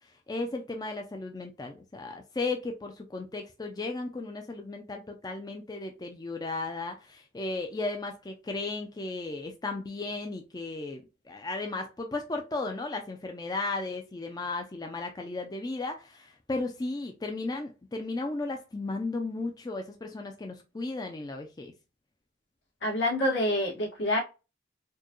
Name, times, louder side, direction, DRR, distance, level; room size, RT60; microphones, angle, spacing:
voice 1, 0.3-21.7, left 3 dB, 20° left, 0.4 m, -35 dB
voice 2, 22.8-24.2, left 1 dB, 75° left, 1.7 m, -27 dB
4.4 x 2.3 x 3.0 m
head